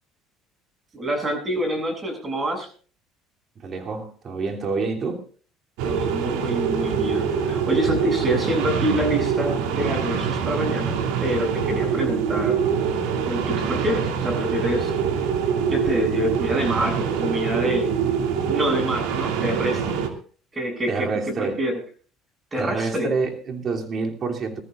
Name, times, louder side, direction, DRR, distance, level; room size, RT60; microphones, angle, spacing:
voice 1, 0.9-2.7 5.8-10.9 11.2-12.6 13.2-14.9 15.7-17.9 18.5-20.0 20.5-21.1 21.4-21.8 22.5-23.1, equal, 25° right, 7.6 m, -26 dB
voice 2, 3.6-5.2 20.9-21.6 22.6-24.6, right 4 dB, 45° right, 3.0 m, -27 dB
sound 1, 5.8-20.1, right 7 dB, 80° right, 2.5 m, -24 dB
21.5 x 14.0 x 2.5 m
supercardioid pair, 95°, 0 cm